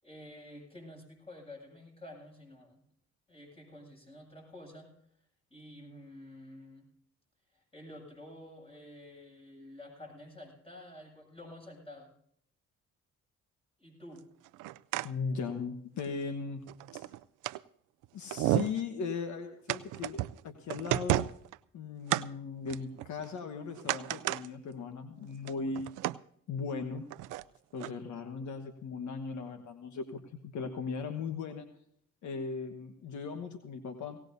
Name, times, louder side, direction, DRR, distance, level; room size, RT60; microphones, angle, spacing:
voice 1, 0.0-2.8 3.3-4.9 5.5-6.8 7.5-12.1 13.8-14.2, left 1 dB, 20° left, 0 dB, 7.6 m, -50 dB
sound 1, 14.5-15.1 15.5-15.6 16.0-16.1 16.7-17.6 18.0-18.1 18.3-18.8 19.7-20.4 20.7-21.6 22.1-22.2 22.7-23.4 23.7-24.5 24.8-24.9 25.3-26.2 27.1-27.4 27.8-27.9, right 15 dB, 85° right, 0.5 m, -32 dB
voice 2, 15.0-16.6 16.9-17.1 18.1-21.3 21.7-25.9 26.5-27.1 27.7-31.7 32.2-34.2, left 5 dB, 70° left, 6 dB, 1.4 m, -38 dB
18.5 x 18.0 x 2.7 m, 0.66 s
cardioid pair, 90°, 30 cm